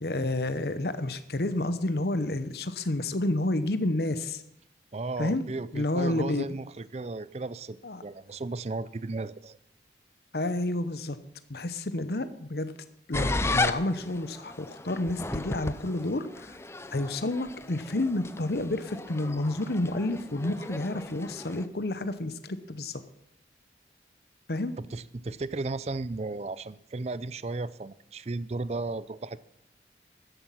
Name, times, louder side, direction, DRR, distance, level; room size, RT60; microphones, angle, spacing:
voice 1, 0.0-4.4 5.2-5.4 5.7-6.5 7.8-8.0 10.3-11.2 11.5-12.7 13.1-16.6 16.9-23.0 24.5-24.8, left 2 dB, 60° left, 11 dB, 0.9 m, -30 dB
voice 2, 4.9-9.6 24.8-29.4, right 3 dB, 35° right, 17 dB, 0.4 m, -35 dB
sound 1, 13.1-21.7, left 2 dB, 15° left, 0.5 m, -34 dB
13.5 x 11.0 x 5.7 m, 0.74 s
head